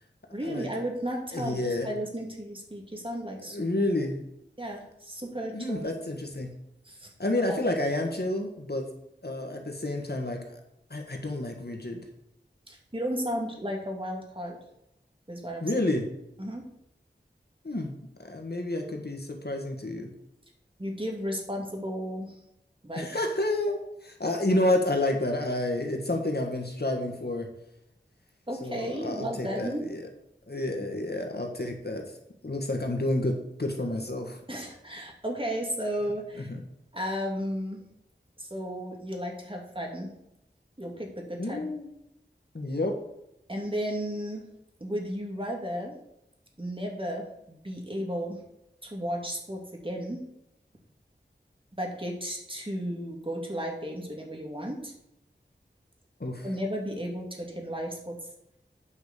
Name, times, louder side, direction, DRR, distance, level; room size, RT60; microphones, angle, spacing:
voice 1, 0.3-3.9 4.6-6.0 6.8-7.1 7.5-7.6 12.7-14.6 15.3-15.7 16.4-16.7 20.8-22.4 22.8-23.2 28.5-29.9 34.5-36.5 36.9-37.8 38.4-40.1 40.8-41.7 43.5-44.5 44.8-46.0 46.6-48.4 48.8-50.3 51.8-54.9 56.4-58.2, equal, 30° right, 0 dB, 2.4 m, -34 dB
voice 2, 1.3-1.9 3.4-4.2 5.5-6.5 7.2-8.9 9.2-10.6 10.9-12.0 15.6-16.1 17.6-17.9 18.2-20.1 22.9-27.5 28.6-30.0 30.5-32.0 32.4-34.4 36.5-36.6 41.4-41.9 42.5-42.9 56.2-56.5, left 1 dB, 60° left, 2 dB, 1.7 m, -29 dB
9.2 x 5.3 x 6.8 m, 0.82 s
wide cardioid pair, 45°, 19 cm